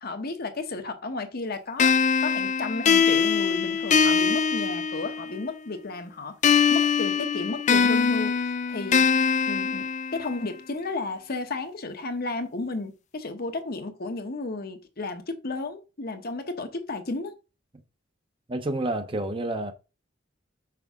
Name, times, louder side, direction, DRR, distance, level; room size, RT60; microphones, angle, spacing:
voice 1, 0.0-9.1 9.5-9.9 10.1-17.3, left 3 dB, 55° left, 0.9 m, -33 dB
sound 1, 1.8-5.4 6.4-10.4, left 6 dB, 40° left, 0.4 m, -23 dB
voice 2, 18.5-19.7, right 1 dB, 30° right, 0.7 m, -29 dB
5.9 x 4.8 x 3.5 m
head